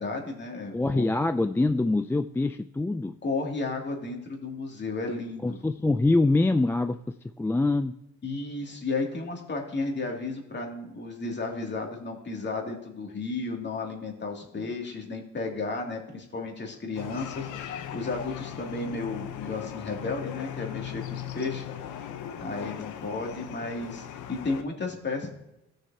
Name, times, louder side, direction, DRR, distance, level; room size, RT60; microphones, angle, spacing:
voice 1, 0.0-1.1 3.2-5.6 8.2-21.6 22.2-25.3, left 3 dB, 35° left, 1 dB, 2.6 m, -33 dB
voice 2, 0.7-3.1 5.4-7.0 7.4-7.9, left 2 dB, 10° left, 8 dB, 0.3 m, -24 dB
sound 1, 17.0-24.6, left 10 dB, 85° left, 1.0 m, -38 dB
15.5 x 6.5 x 2.8 m, 0.86 s
cardioid pair, 90°, 30 cm